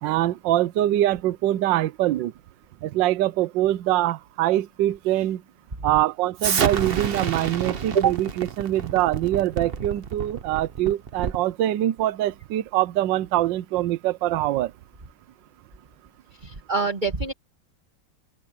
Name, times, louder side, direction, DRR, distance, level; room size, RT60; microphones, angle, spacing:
voice 1, 0.0-2.3 2.8-5.4 5.8-14.7, right 14 dB, 75° right, 1.3 m, -24 dB
Explosion, 6.4-11.5, right 7 dB, 45° right, 0.8 m, -29 dB
voice 2, 16.4-17.3, right 6 dB, 25° right, 1.7 m, -24 dB
open air
omnidirectional pair, 2.1 m